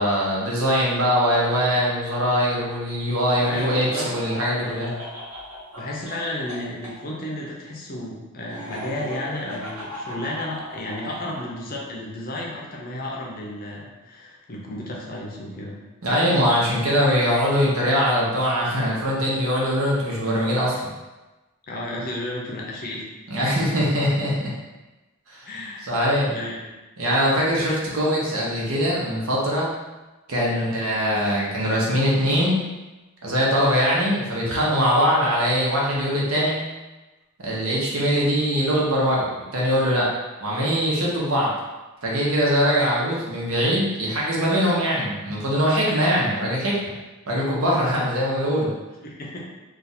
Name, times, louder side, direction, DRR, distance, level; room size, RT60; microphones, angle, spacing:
voice 1, 0.0-4.9 16.0-20.9 23.3-24.5 25.3-25.5 25.8-26.3 27.0-29.7 30.3-32.6 33.2-36.6 37.4-40.1 40.4-41.5 42.0-46.9 47.3-48.7, equal, 70° right, -5 dB, 0.9 m, -22 dB
Laughter, 3.3-6.9 8.5-11.4, left 1 dB, 90° right, 1.2 m, -37 dB
voice 2, 3.4-4.1 5.8-15.8 21.7-23.0 25.4-25.9 26.3-26.7 27.7-27.8 30.5-30.8 48.0-48.1 49.0-49.5, left 1 dB, 40° left, -2 dB, 0.6 m, -33 dB
2.5 x 2.4 x 4.1 m, 1.1 s
head